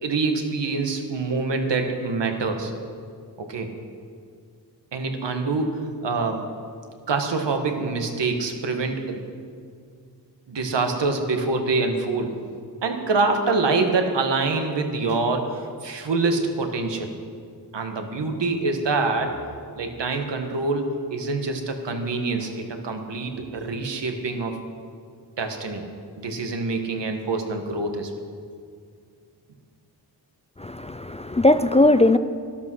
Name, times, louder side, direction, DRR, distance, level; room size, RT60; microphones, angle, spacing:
voice 1, 0.0-2.7 3.4-3.7 4.9-6.4 7.1-9.2 10.5-12.3 12.8-17.1 17.7-19.4 19.7-24.5 25.4-25.8 26.2-28.1, right 3 dB, 85° right, 5 dB, 1.6 m, -25 dB
voice 2, 30.6-32.2, left 2 dB, 15° left, 11 dB, 0.3 m, -18 dB
13.5 x 12.0 x 6.3 m, 2.2 s
wide cardioid pair, 130°, 41 cm